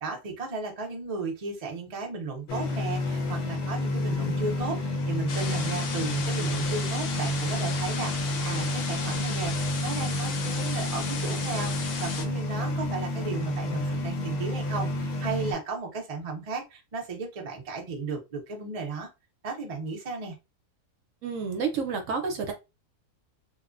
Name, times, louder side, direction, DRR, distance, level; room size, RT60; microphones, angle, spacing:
voice 1, 0.0-8.1 8.4-19.1 19.4-20.4, right 3 dB, 50° right, 1 dB, 0.4 m, -35 dB
sound 1, 2.5-15.5, left 1 dB, 65° left, 0.9 m, -30 dB
sound 2, 5.3-12.2, left 5 dB, 85° left, 0.5 m, -35 dB
voice 2, 21.2-22.5, right 5 dB, 65° right, 5 dB, 0.9 m, -29 dB
3.0 x 2.1 x 2.4 m, 0.26 s
omnidirectional pair, 1.6 m